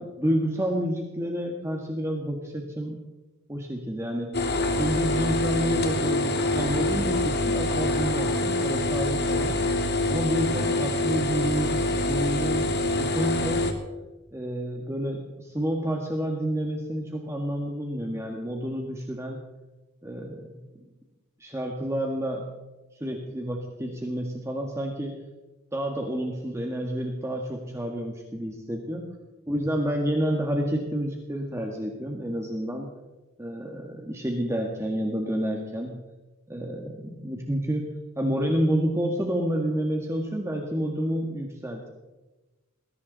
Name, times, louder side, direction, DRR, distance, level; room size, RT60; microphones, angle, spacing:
voice 1, 0.0-3.0 3.5-4.3 4.8-9.6 10.1-13.6 14.3-19.4 20.0-20.6 21.4-22.5 22.9-25.1 25.7-29.1 29.5-32.9 33.4-35.9 36.5-37.0 37.2-37.8 38.2-41.9, equal, 15° right, 1 dB, 1.7 m, -29 dB
sound 1, 4.3-13.7, left 2 dB, 50° left, 2.2 m, -25 dB
20.5 x 17.0 x 4.1 m, 1.1 s
head